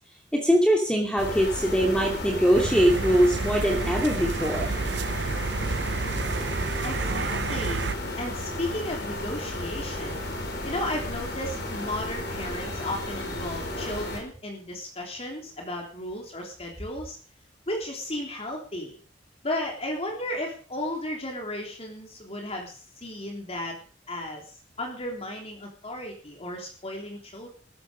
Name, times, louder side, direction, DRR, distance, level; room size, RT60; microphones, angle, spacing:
voice 1, 0.3-4.7, equal, 5° left, 1 dB, 2.5 m, -22 dB
sound 1, 1.2-14.2, left 1 dB, 65° left, 5.1 m, -33 dB
sound 2, 2.5-7.9, right 4 dB, 70° right, 0.7 m, -30 dB
voice 2, 6.8-7.8 8.2-10.2 10.6-17.2 17.7-19.0 19.4-23.8 24.1-27.5, left 1 dB, 35° left, 1 dB, 3.4 m, -34 dB
14.5 x 14.0 x 5.1 m, 0.42 s
head